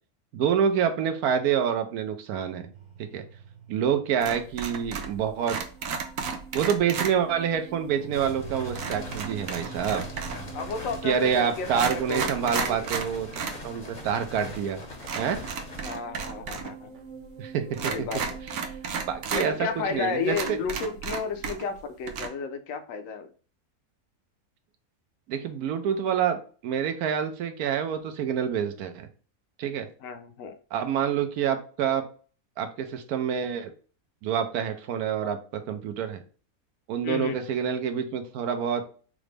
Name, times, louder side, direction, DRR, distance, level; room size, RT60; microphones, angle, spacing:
voice 1, 0.3-2.7 3.0-3.2 3.7-5.6 6.5-10.0 11.0-13.3 13.6-14.8 15.1-15.4 17.4-18.1 19.1-20.6 25.3-29.1 29.6-29.9 30.7-32.0 32.6-33.7 34.2-36.2 36.9-38.8, right 8 dB, 85° right, 7 dB, 1.1 m, -27 dB
sound 1, 2.7-21.6, right 6 dB, 35° right, 0.5 m, -46 dB
sound 2, 4.2-5.2 5.4-7.1 8.7-10.5 11.2-11.3 11.7-13.6 13.9-14.0 15.0-16.7 16.9-17.0 17.7-19.5 19.9-20.0 20.3-21.8 22.1-22.3, right 6 dB, 70° right, 1.0 m, -33 dB
sound 3, 8.1-15.8, left 2 dB, 35° left, 0.8 m, -42 dB
voice 2, 10.5-12.9 15.8-16.9 17.9-18.2 19.3-23.3 30.0-30.6 37.0-37.4, left 5 dB, 65° left, 7 dB, 1.0 m, -32 dB
4.8 x 2.1 x 3.3 m, 0.40 s
omnidirectional pair, 1.6 m